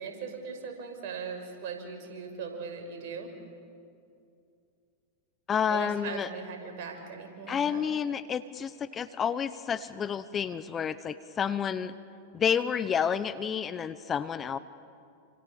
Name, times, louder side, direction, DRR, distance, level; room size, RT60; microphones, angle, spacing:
voice 1, 0.0-3.3 5.7-7.8, right 5 dB, 55° right, 3 dB, 5.8 m, -39 dB
voice 2, 5.5-6.3 7.5-11.9 12.3-14.6, left 7 dB, 25° left, 14 dB, 1.0 m, -30 dB
28.5 x 26.0 x 7.1 m, 2.5 s
hypercardioid pair, 100°, 0 cm